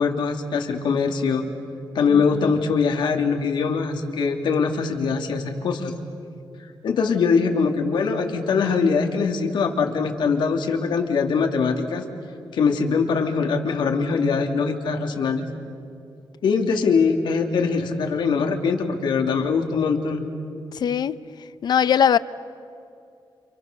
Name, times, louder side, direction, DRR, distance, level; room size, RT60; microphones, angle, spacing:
voice 1, 0.0-1.4 1.9-5.9 6.8-12.0 12.5-15.4 16.4-20.2, left 5 dB, 80° left, 3 dB, 2.8 m, -22 dB
voice 2, 2.1-2.5 20.7-21.2 21.6-22.2, left 8 dB, 65° left, 15 dB, 0.7 m, -21 dB
29.5 x 29.0 x 6.8 m, 2.5 s
wide cardioid pair, 120°, 8 cm